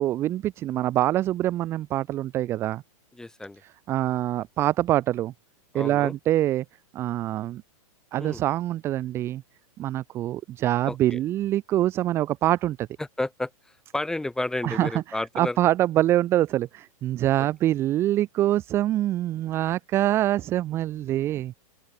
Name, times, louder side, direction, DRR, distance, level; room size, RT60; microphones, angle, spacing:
voice 1, 0.0-2.8 3.9-5.3 5.7-6.6 6.9-7.6 8.1-9.4 9.8-12.9 14.6-15.0 15.4-21.6, right 14 dB, 15° right, 0.3 m, -25 dB
voice 2, 3.1-3.6 5.7-6.1 8.2-8.4 10.8-11.2 13.0-13.5 13.9-15.6 17.4-17.5, left 2 dB, 5° left, 1.4 m, -31 dB
open air
hypercardioid pair, 155°, 19 cm